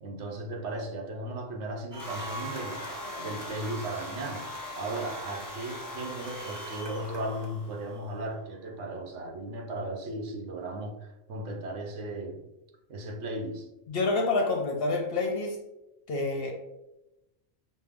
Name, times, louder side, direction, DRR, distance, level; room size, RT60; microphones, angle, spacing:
voice 1, 0.0-2.9 3.2-4.5 4.8-12.4 12.9-13.7, right 1 dB, 70° right, 2 dB, 1.0 m, -36 dB
sound 1, 1.9-7.4, right 1 dB, 30° right, 0.5 m, -43 dB
sound 2, 2.0-8.1, left 1 dB, 20° left, 0.8 m, -41 dB
voice 2, 13.9-15.6 16.1-16.5, left 3 dB, 60° left, 2 dB, 0.7 m, -28 dB
5.4 x 2.0 x 3.5 m, 0.95 s
omnidirectional pair, 1.3 m